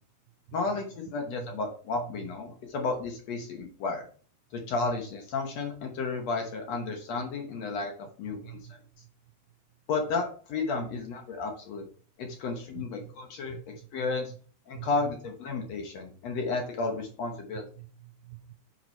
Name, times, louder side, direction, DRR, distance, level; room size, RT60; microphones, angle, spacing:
voice 1, 0.5-4.1 4.5-8.6 9.9-11.8 12.2-13.6 13.9-14.3 14.7-17.6, left 3 dB, 70° left, 3 dB, 1.6 m, -32 dB
voice 2, 12.7-13.1 13.5-13.6 14.7-14.9 17.8-18.5, right 16 dB, 90° right, 7 dB, 1.9 m, -45 dB
8.0 x 6.0 x 4.5 m, 0.42 s
omnidirectional pair, 4.7 m